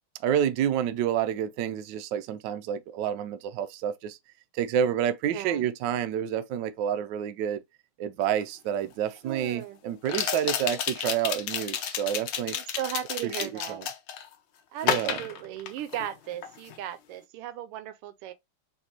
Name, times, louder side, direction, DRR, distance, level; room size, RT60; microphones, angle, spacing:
voice 1, 0.2-4.2 4.5-7.6 8.0-12.6 13.2-13.8 14.8-15.2, right 9 dB, 70° right, 1.1 m, -29 dB
voice 2, 5.3-5.7 9.2-9.8 12.5-13.8 14.7-18.3, right 11 dB, 90° right, 1.5 m, -36 dB
sound 1, 8.4-8.5 10.1-14.3 14.8-16.1 16.4-16.8, left 9 dB, 70° left, 1.3 m, -31 dB
4.5 x 3.5 x 2.8 m
omnidirectional pair, 2.4 m